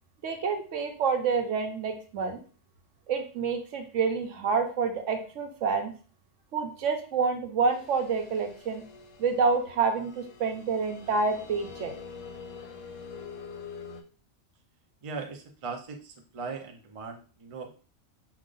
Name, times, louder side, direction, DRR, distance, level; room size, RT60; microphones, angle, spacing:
voice 1, 0.2-2.4 3.1-5.9 6.5-8.8 9.2-11.9, right 5 dB, 75° right, 5 dB, 1.1 m, -28 dB
sound 1, 7.7-14.0, left 5 dB, 85° left, 1.1 m, -45 dB
voice 2, 15.0-17.7, right 4 dB, 40° right, 3 dB, 0.5 m, -39 dB
5.0 x 2.4 x 3.8 m, 0.38 s
omnidirectional pair, 1.3 m